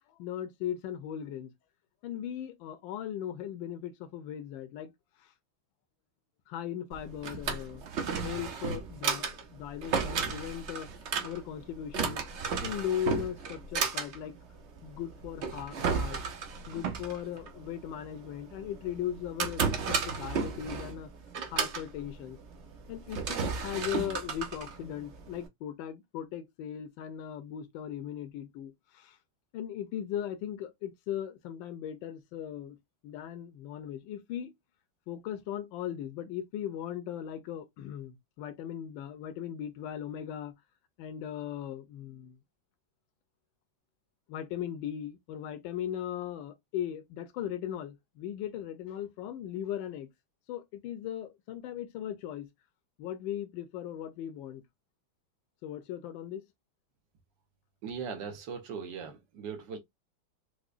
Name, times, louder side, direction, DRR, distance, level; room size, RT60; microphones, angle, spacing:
voice 1, 0.2-1.5 2.0-4.9 5.2-5.3 6.5-7.8 8.2-10.9 11.2-12.2 12.6-14.4 14.8-16.2 16.7-21.1 21.5-22.4 22.9-29.2 29.5-32.8 33.0-34.5 35.1-40.5 41.0-42.4 44.3-50.1 50.5-52.5 53.0-54.6 55.6-56.4, left 10 dB, 75° left, 1.3 m, -38 dB
Drawer open or close, 6.9-25.5, right 5 dB, 85° right, 0.6 m, -34 dB
voice 2, 57.8-59.8, right 6 dB, 70° right, 1.4 m, -39 dB
4.8 x 2.1 x 2.4 m
omnidirectional pair, 2.1 m